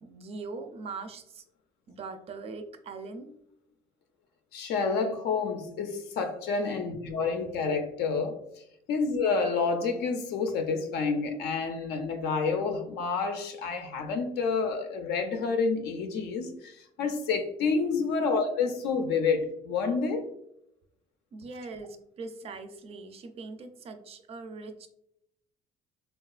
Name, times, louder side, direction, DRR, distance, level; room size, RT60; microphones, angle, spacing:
voice 1, 0.0-1.4 1.9-3.3 18.1-18.3 21.3-24.9, right 3 dB, 35° right, 7 dB, 0.4 m, -41 dB
voice 2, 4.5-8.4 8.9-20.3, left 4 dB, 80° left, 5 dB, 0.4 m, -29 dB
3.6 x 2.3 x 2.3 m, 0.77 s
cardioid pair, 110°, 17 cm